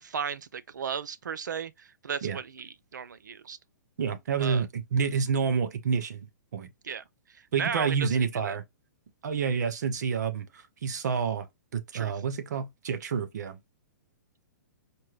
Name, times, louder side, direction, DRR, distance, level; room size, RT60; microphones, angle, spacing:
voice 1, 0.0-3.6 4.4-4.7 6.8-8.6 11.9-12.1, right 6 dB, 85° right, 0.5 m, -35 dB
voice 2, 4.0-6.3 6.5-6.7 7.5-8.6 9.2-11.5 11.7-13.6, right 6 dB, 70° right, 0.8 m, -28 dB
4.4 x 2.2 x 3.2 m
hypercardioid pair, 130°, 10 cm